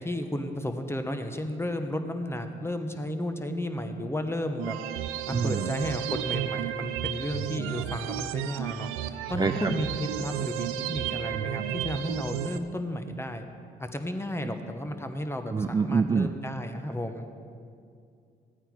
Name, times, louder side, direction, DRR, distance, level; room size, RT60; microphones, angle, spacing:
voice 1, 0.0-4.8 5.3-13.4 13.8-17.3, left 1 dB, 10° left, 6 dB, 1.1 m, -33 dB
sound 1, 4.6-12.6, right 11 dB, 85° right, 0.5 m, -32 dB
voice 2, 5.3-5.7 9.4-9.5 15.5-16.3, right 5 dB, 20° right, 9 dB, 0.4 m, -25 dB
14.0 x 8.9 x 4.8 m, 2.3 s
supercardioid pair, 55°, 21 cm